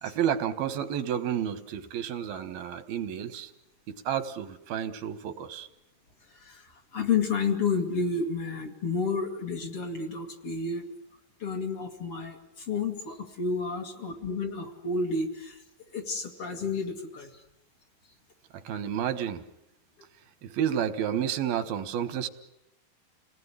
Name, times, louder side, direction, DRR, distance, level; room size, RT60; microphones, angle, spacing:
voice 1, 0.0-3.5 3.9-5.7 18.5-19.4 20.4-22.3, right 9 dB, 85° right, 11 dB, 3.3 m, -31 dB
voice 2, 6.3-10.9 11.4-15.6 15.9-17.4, left 4 dB, 45° left, 4 dB, 2.7 m, -31 dB
29.0 x 19.0 x 10.0 m, 0.87 s
omnidirectional pair, 4.2 m